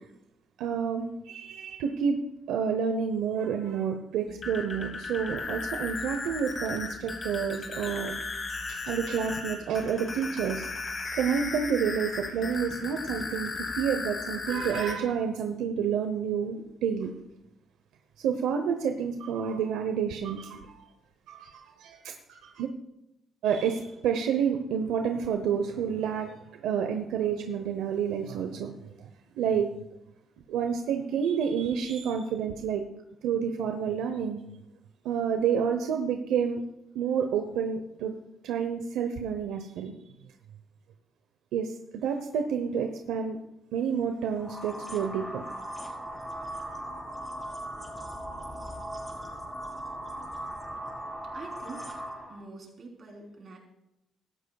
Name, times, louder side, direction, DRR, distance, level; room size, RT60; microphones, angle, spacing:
voice 1, 0.6-2.2 2.5-8.1 8.7-10.7 11.2-17.1 18.2-20.8 21.3-22.7 23.4-26.4 26.6-28.7 29.0-29.1 29.4-29.7 30.5-32.8 33.2-34.4 35.0-36.6 36.9-38.1 38.4-39.9 41.5-43.4 43.7-45.4, right 7 dB, 90° right, 6 dB, 0.9 m, -29 dB
sound 1, 4.3-14.9, left 3 dB, 35° left, 3.2 m, -36 dB
sound 2, 44.4-52.4, right 1 dB, 10° left, 3.6 m, -38 dB
voice 2, 51.2-52.0 52.3-53.6, right 3 dB, 50° right, 0 dB, 3.7 m, -45 dB
16.5 x 13.0 x 2.3 m, 0.85 s
cardioid pair, 90°, 0 cm